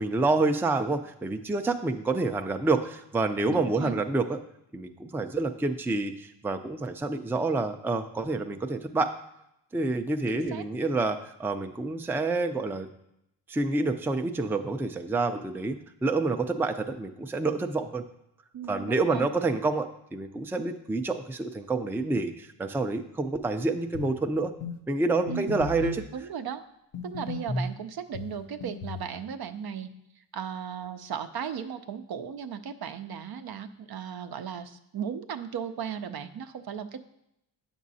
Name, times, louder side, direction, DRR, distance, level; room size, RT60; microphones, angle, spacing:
voice 1, 0.0-4.4 4.7-9.1 9.7-12.9 13.5-18.0 18.7-24.5 24.9-26.0, right 3 dB, 5° right, 6 dB, 0.5 m, -28 dB
voice 2, 3.5-4.0 10.3-10.6 18.5-19.3 25.3-25.6 26.1-26.6 27.0-29.9 30.3-37.0, right 8 dB, 55° right, 9 dB, 0.6 m, -36 dB
sound 1, 23.9-24.2 24.6-24.8 25.3-26.0 26.9-27.7 28.1-29.1, left 3 dB, 85° left, 0.9 m, -35 dB
8.4 x 6.2 x 2.7 m, 0.80 s
cardioid pair, 55°, 46 cm